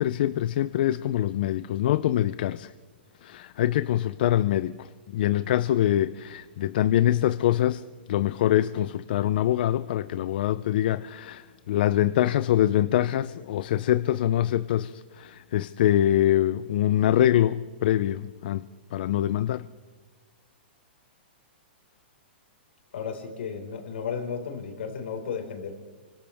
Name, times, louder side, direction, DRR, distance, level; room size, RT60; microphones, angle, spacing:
voice 1, 0.0-2.7 3.2-7.8 8.1-18.7 18.9-19.6, left 12 dB, 55° left, 0.5 m, -24 dB
voice 2, 22.9-25.7, left 6 dB, 75° left, 4.8 m, -34 dB
30.0 x 25.0 x 3.5 m
hypercardioid pair, 155°, 6 cm